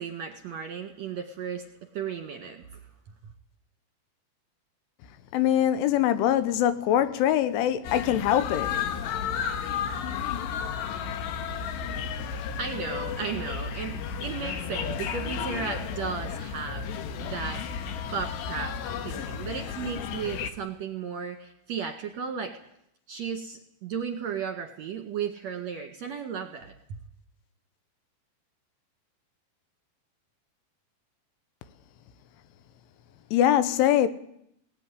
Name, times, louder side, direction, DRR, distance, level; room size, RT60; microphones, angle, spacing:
voice 1, 0.0-1.6 1.9-2.6 12.3-17.6 18.1-22.6 23.1-26.7, right 6 dB, 55° right, 2.1 m, -35 dB
voice 2, 5.3-8.8 33.3-34.1, left 11 dB, 85° left, 3.6 m, -23 dB
sound 1, 7.8-20.5, left 7 dB, 70° left, 3.3 m, -33 dB
20.0 x 18.5 x 9.9 m
omnidirectional pair, 5.4 m